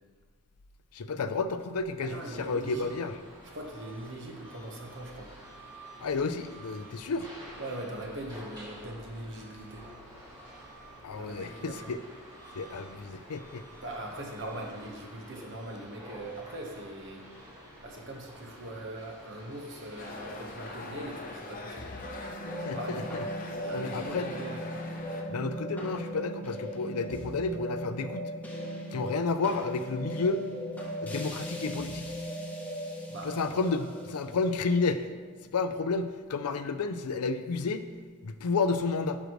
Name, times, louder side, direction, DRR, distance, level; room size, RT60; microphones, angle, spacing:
voice 1, 0.9-3.2 6.0-7.3 11.0-12.0 12.6-13.6 22.6-23.2 23.7-24.3 25.3-28.3 28.9-30.4 31.0-32.1 33.2-35.0 35.5-37.8 38.2-39.2, left 4 dB, 90° left, 10 dB, 0.5 m, -31 dB
sound 1, 2.0-21.8, right 1 dB, 20° right, 2.4 m, -49 dB
voice 2, 2.0-2.9 3.4-5.3 7.6-9.8 11.2-11.9 13.8-17.2 17.8-21.9 22.6-23.0 23.5-24.6 33.1-33.8, right 1 dB, 55° right, 1 dB, 1.2 m, -41 dB
sound 2, 20.0-25.2, left 2 dB, 40° left, 0.8 m, -42 dB
sound 3, 21.8-36.2, equal, 5° left, 0.9 m, -38 dB
9.9 x 6.5 x 3.1 m, 1.5 s
head